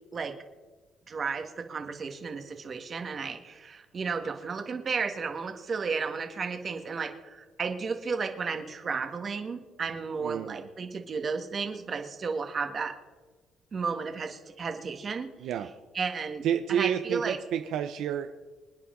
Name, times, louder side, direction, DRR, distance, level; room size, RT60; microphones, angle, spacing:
voice 1, 1.1-13.0 13.7-15.3 15.9-16.4 16.7-17.4, right 5 dB, 35° right, 5 dB, 1.7 m, -33 dB
voice 2, 10.2-10.7 15.4-15.7 16.4-18.4, right 9 dB, 75° right, 8 dB, 0.7 m, -30 dB
26.0 x 9.8 x 3.9 m, 1.3 s
cardioid pair, 120°, 0 cm